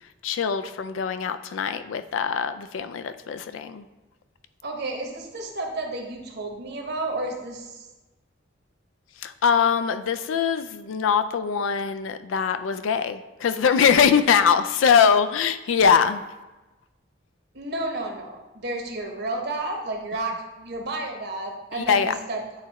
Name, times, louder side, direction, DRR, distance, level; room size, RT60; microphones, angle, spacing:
voice 1, 0.2-3.9 9.2-16.2 21.8-22.1, left 6 dB, 90° left, 11 dB, 0.4 m, -22 dB
voice 2, 4.6-7.9 17.5-22.6, right 2 dB, 60° right, 2 dB, 1.0 m, -31 dB
8.9 x 3.0 x 4.1 m, 1.1 s
head